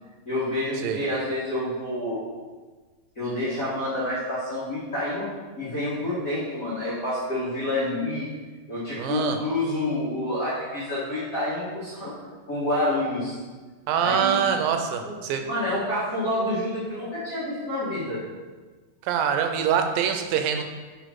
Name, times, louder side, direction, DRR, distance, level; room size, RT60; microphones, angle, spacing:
voice 1, 0.2-2.2 3.1-5.3 5.6-8.3 8.7-12.1 12.5-13.3 14.0-14.4 15.0-15.2 15.5-18.2, left 1 dB, 40° left, -11 dB, 1.1 m, -28 dB
voice 2, 9.0-9.4 13.9-15.5 19.0-20.6, right 8 dB, 85° right, 6 dB, 2.3 m, -24 dB
5.2 x 5.0 x 5.8 m, 1.4 s
omnidirectional pair, 4.1 m